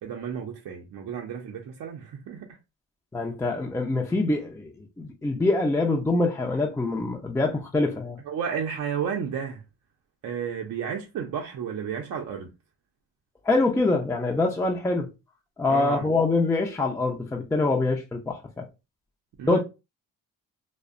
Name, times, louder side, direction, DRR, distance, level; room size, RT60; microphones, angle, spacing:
voice 1, 0.0-2.6 8.3-9.6 10.2-12.5 15.7-16.1 19.4-19.6, right 7 dB, 60° right, 0.5 m, -32 dB
voice 2, 3.1-8.2 13.5-15.1 15.6-18.7 19.4-19.6, left 2 dB, 10° left, 0.4 m, -25 dB
2.6 x 2.1 x 2.5 m
cardioid pair, 80°, 36 cm